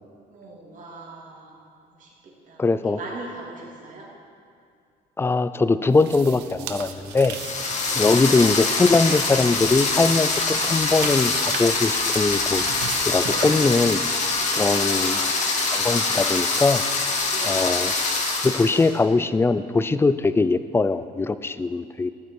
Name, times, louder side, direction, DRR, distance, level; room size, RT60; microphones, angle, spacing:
voice 1, 0.3-1.6 1.9-4.1 7.9-8.1 14.5-15.4 17.3-17.7, right 2 dB, 50° right, -2 dB, 2.7 m, -41 dB
voice 2, 2.6-3.0 5.2-7.4 8.0-12.6 12.9-14.0 14.5-15.2 15.7-16.8 17.4-17.9 18.4-22.1, left 3 dB, 15° left, 13 dB, 0.4 m, -21 dB
sound 1, 5.9-14.5, right 8 dB, 85° right, 0.8 m, -38 dB
sound 2, 7.2-18.9, left 3 dB, 45° left, 1.6 m, -24 dB
Fire, 9.8-13.6 15.5-15.6 16.4-16.8, left 3 dB, 70° left, 2.9 m, -43 dB
13.5 x 8.2 x 4.7 m, 2.4 s
cardioid pair, 110°, 17 cm